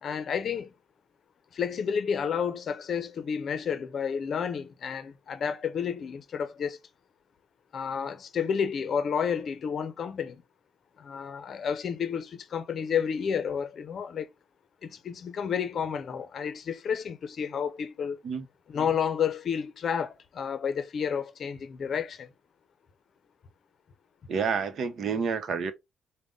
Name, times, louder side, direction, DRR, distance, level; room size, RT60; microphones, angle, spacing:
voice 1, 0.0-0.7 1.5-6.8 7.7-10.4 11.0-14.3 14.8-18.2 18.7-22.3, left 7 dB, 55° left, 0.6 m, -31 dB
voice 2, 24.3-25.7, right 6 dB, 60° right, 0.8 m, -29 dB
5.1 x 2.1 x 3.5 m
cardioid pair, 90°, 0 cm